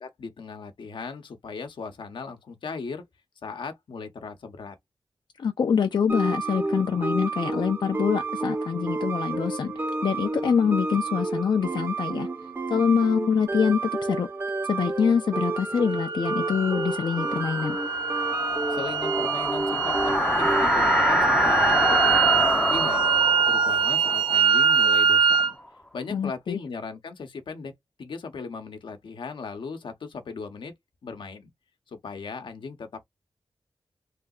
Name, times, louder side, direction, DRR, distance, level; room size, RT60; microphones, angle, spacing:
voice 1, 0.0-3.1 3.4-4.8 18.7-23.1 23.5-25.6 25.9-27.7 28.0-30.7 31.0-31.5 31.9-33.0, left 4 dB, 90° left, 0.8 m, -37 dB
voice 2, 5.4-12.3 12.7-14.3 14.7-17.8 26.1-26.6, left 6 dB, 70° left, 0.4 m, -25 dB
sound 1, 6.1-20.8, right 3 dB, 30° right, 0.7 m, -30 dB
sound 2, 15.9-25.5, right 6 dB, 70° right, 0.4 m, -24 dB
sound 3, 16.8-25.5, left 1 dB, 10° left, 0.4 m, -27 dB
3.2 x 2.8 x 2.3 m
wide cardioid pair, 105°, 8 cm